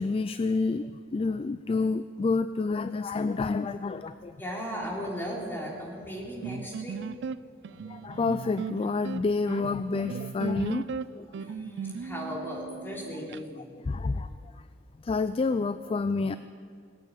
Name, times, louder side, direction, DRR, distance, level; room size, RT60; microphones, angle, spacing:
voice 1, 0.0-4.4 7.9-11.4 13.9-14.3 15.0-16.4, left 3 dB, 30° left, 12 dB, 0.3 m, -29 dB
voice 2, 4.4-7.0 11.4-13.8, equal, 10° left, -3 dB, 3.3 m, -36 dB
sound 1, 6.4-13.4, right 5 dB, 65° right, 0.3 m, -37 dB
18.5 x 8.6 x 8.4 m, 2.1 s
head